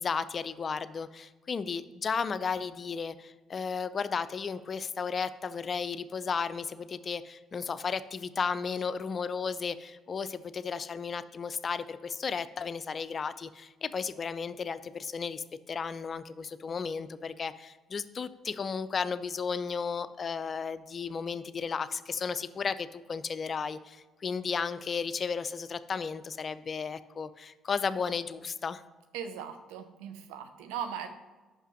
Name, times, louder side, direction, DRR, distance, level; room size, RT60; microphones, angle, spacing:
voice 1, 0.0-28.8, left 5 dB, 45° left, 14 dB, 0.4 m, -34 dB
voice 2, 29.1-31.1, right 8 dB, 80° right, 8 dB, 0.6 m, -38 dB
5.9 x 5.6 x 6.1 m, 1.2 s
hypercardioid pair, 55°, 0 cm